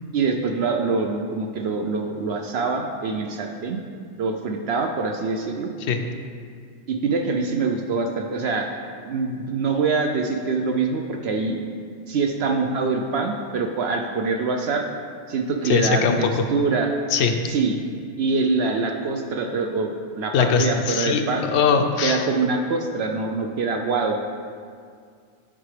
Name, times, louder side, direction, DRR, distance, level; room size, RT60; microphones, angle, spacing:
voice 1, 0.1-3.8 4.2-5.7 6.9-8.7 9.0-11.6 12.1-14.9 15.3-16.9 17.5-17.8 18.2-19.9 20.2-21.4 22.0-24.2, right 4 dB, 65° right, 3 dB, 0.7 m, -24 dB
voice 2, 15.6-16.3 17.1-17.4 20.3-22.2, left 6 dB, 70° left, 5 dB, 0.8 m, -21 dB
9.4 x 4.7 x 3.2 m, 2.1 s
omnidirectional pair, 1.3 m